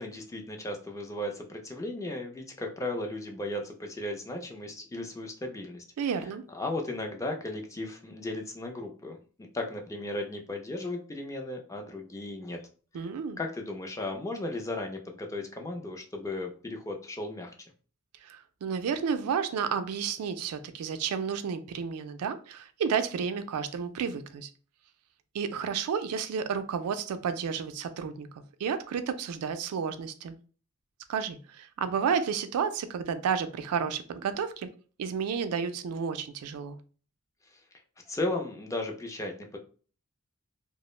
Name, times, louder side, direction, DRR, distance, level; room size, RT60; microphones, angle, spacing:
voice 1, 0.0-6.1 6.5-12.6 12.9-13.1 13.4-17.5 37.5-37.6 38.1-39.6, left 2 dB, 15° left, 0.3 m, -36 dB
voice 2, 6.0-6.4 12.9-13.4 18.2-24.5 25.3-28.3 28.6-30.3 31.1-34.7 35.0-36.8, right 6 dB, 75° right, 0.3 m, -31 dB
2.3 x 2.0 x 3.0 m
head